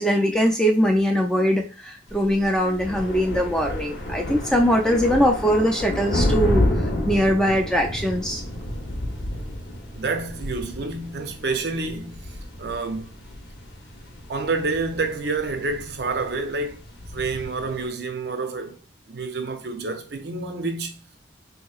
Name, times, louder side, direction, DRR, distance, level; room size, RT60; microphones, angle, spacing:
voice 1, 0.0-8.4, equal, 5° left, 0.3 m, -21 dB
sound 1, 2.1-17.9, left 1 dB, 80° left, 0.8 m, -30 dB
voice 2, 9.9-13.2 14.3-16.8 17.1-18.8 19.1-21.2, right 3 dB, 60° right, 0.5 m, -28 dB
3.8 x 2.8 x 2.3 m
head